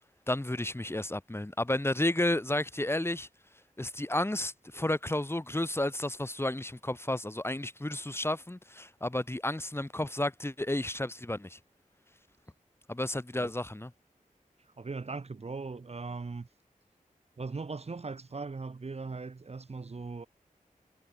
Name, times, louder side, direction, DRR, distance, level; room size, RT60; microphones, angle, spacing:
voice 1, 0.3-3.3 3.8-11.6 12.9-13.9, left 1 dB, 15° left, 2.0 m, -32 dB
voice 2, 14.8-16.5 17.4-20.3, right 4 dB, 45° right, 1.0 m, -39 dB
wide cardioid pair, 85°, 14 cm